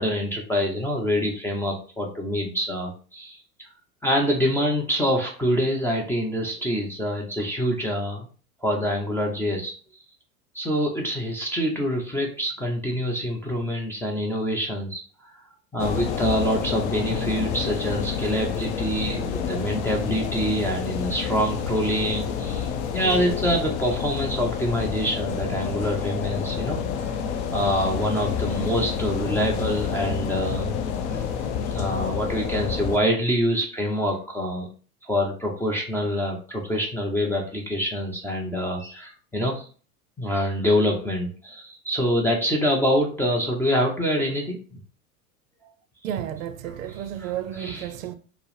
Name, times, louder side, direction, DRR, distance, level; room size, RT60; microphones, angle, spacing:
voice 1, 0.0-3.7 4.0-8.3 8.6-10.0 10.5-15.3 15.7-26.8 27.5-30.8 31.7-34.7 35.0-39.7 40.2-44.6 46.9-47.9, equal, 5° left, 0.4 m, -26 dB
sound 1, 15.8-33.0, left 7 dB, 50° left, 0.6 m, -29 dB
sound 2, 22.9-27.9 28.2-28.6 30.9-31.9, left 3 dB, 25° left, 1.4 m, -43 dB
voice 2, 46.0-48.2, right 10 dB, 60° right, 0.5 m, -32 dB
4.4 x 2.0 x 3.2 m
hypercardioid pair, 95°, 46 cm